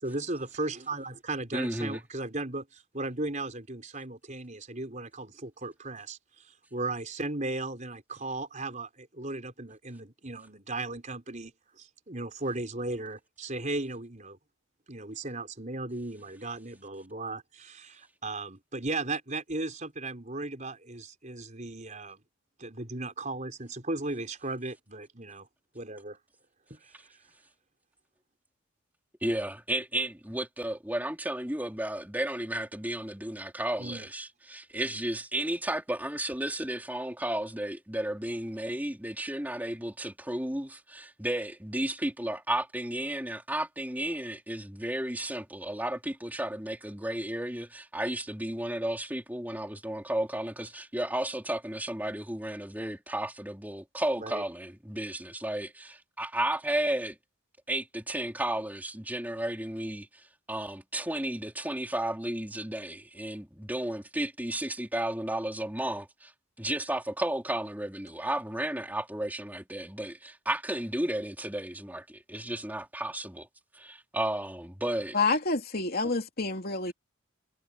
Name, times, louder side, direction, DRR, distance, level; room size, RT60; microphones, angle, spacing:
voice 1, 0.0-14.4 14.9-22.2 22.6-25.5 25.7-26.2 26.7-27.1 33.8-34.1 54.2-54.4, right 2 dB, 35° right, 4.7 m, -36 dB
voice 2, 1.5-2.0 29.2-57.2 57.7-66.3 66.6-73.5 73.7-75.2, right 1 dB, 10° right, 3.3 m, -33 dB
voice 3, 75.1-76.9, left 3 dB, 45° left, 3.0 m, -28 dB
head